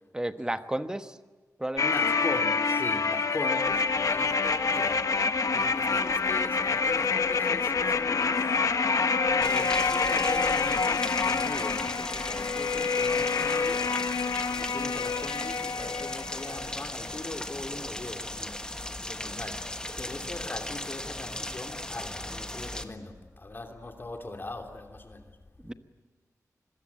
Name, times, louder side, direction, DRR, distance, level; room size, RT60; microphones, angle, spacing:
voice 1, 0.1-1.1 1.6-2.1 25.6-25.7, right 1 dB, 10° right, 9 dB, 1.2 m, -33 dB
sound 1, 1.8-16.8 17.1-17.2, left 4 dB, 65° left, 1.3 m, -27 dB
voice 2, 1.8-5.1 5.5-8.6 9.3-13.9 14.5-18.6 19.1-25.3, left 2 dB, 35° left, 4 dB, 3.1 m, -40 dB
Rain, 9.4-22.8, left 1 dB, 15° left, 1.5 m, -37 dB
26.5 x 21.5 x 8.7 m, 1.3 s
wide cardioid pair, 125°, 6 cm